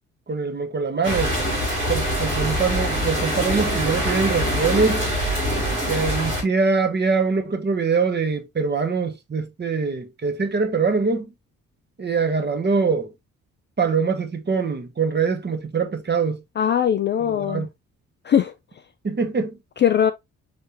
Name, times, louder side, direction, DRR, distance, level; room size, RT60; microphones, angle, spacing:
voice 1, 0.3-1.3 1.9-5.0 5.8-11.3 12.0-13.1 13.8-16.4 17.4-17.7 19.0-19.6, right 4 dB, 25° right, 1.1 m, -23 dB
sound 1, 1.0-6.4, equal, 85° right, 2.4 m, -24 dB
voice 2, 16.6-17.7 18.2-18.5 19.8-20.1, left 9 dB, 30° left, 0.4 m, -20 dB
5.6 x 3.3 x 2.8 m
figure-of-eight pair, 45°, 40 cm